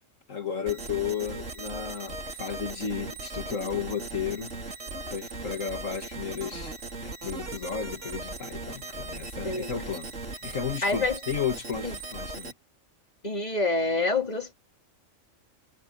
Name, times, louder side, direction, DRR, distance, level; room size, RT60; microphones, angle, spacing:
voice 1, 0.3-4.5 5.1-12.5, left 7 dB, 75° left, 2.4 m, -33 dB
sound 1, 0.7-12.5, right 2 dB, 65° right, 3.8 m, -38 dB
voice 2, 10.8-11.2 11.8-11.9 13.2-14.5, left 3 dB, 30° left, 4.1 m, -27 dB
omnidirectional pair, 1.4 m